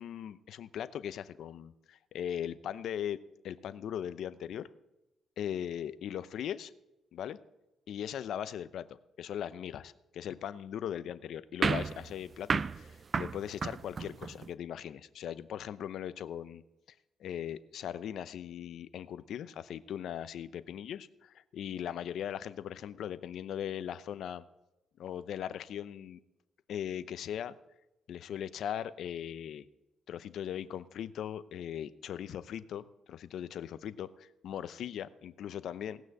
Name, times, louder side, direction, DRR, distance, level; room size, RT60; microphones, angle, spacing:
voice 1, 0.0-3.2 3.4-4.7 5.4-6.7 7.1-7.4 7.9-16.6 17.2-24.4 25.0-26.2 26.7-27.5 28.1-29.7 30.1-36.0, left 9 dB, 70° left, 14 dB, 0.6 m, -39 dB
sound 1, 11.6-14.5, right 5 dB, 35° right, 0.4 m, -33 dB
17.0 x 6.3 x 7.8 m, 0.95 s
cardioid pair, 90°, 0 cm